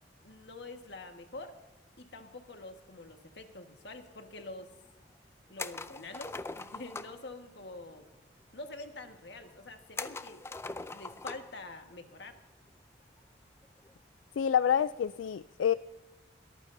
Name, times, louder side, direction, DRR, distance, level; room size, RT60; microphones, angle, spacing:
voice 1, 0.2-1.6 2.0-4.7 5.5-8.1 8.5-10.4 10.9-12.4, left 2 dB, 65° left, 5 dB, 1.5 m, -46 dB
sound 1, 5.6-7.2 10.0-11.6 11.9-12.0 13.6-13.9, left 3 dB, 15° left, 0.4 m, -41 dB
voice 2, 14.4-15.7, left 8 dB, 85° left, 15 dB, 0.3 m, -27 dB
22.0 x 14.5 x 2.7 m, 1.1 s
head